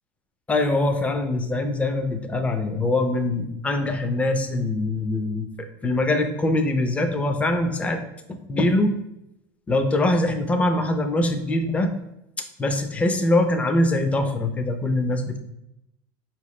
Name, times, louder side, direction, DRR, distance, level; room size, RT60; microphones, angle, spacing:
voice 1, 0.5-5.5 5.8-8.0 8.3-9.0 9.7-11.9 12.4-15.4, left 2 dB, 10° left, 6 dB, 0.3 m, -23 dB
4.6 x 2.8 x 3.1 m, 0.84 s
supercardioid pair, 150°, 12 cm